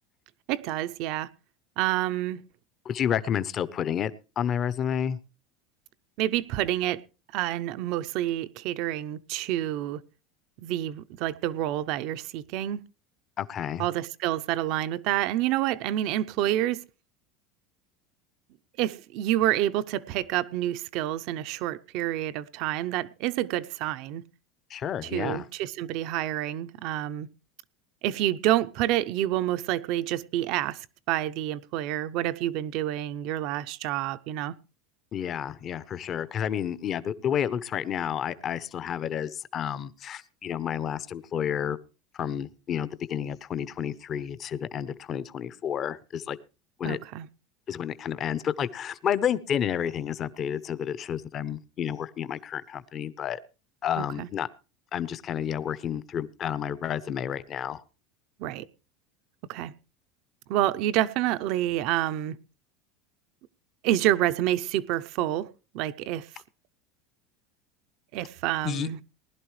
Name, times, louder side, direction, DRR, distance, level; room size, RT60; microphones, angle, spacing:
voice 1, 0.5-1.3 1.8-2.4 6.2-7.0 7.3-10.0 10.6-12.8 13.8-16.8 18.8-24.2 25.0-27.3 28.0-30.8 31.1-34.5 46.8-47.3 54.2-54.3 58.4-58.6 59.5-59.7 60.5-62.4 63.8-65.5 65.7-66.3 68.1-69.0, right 13 dB, 55° right, 0.6 m, -28 dB
voice 2, 2.8-4.1 4.4-5.2 13.4-13.8 24.7-25.5 35.1-41.8 42.1-46.4 46.8-47.0 47.7-53.4 53.8-54.5 54.9-57.8 68.6-68.9, left 9 dB, 35° left, 0.7 m, -30 dB
19.5 x 11.0 x 3.2 m
supercardioid pair, 140°, 0 cm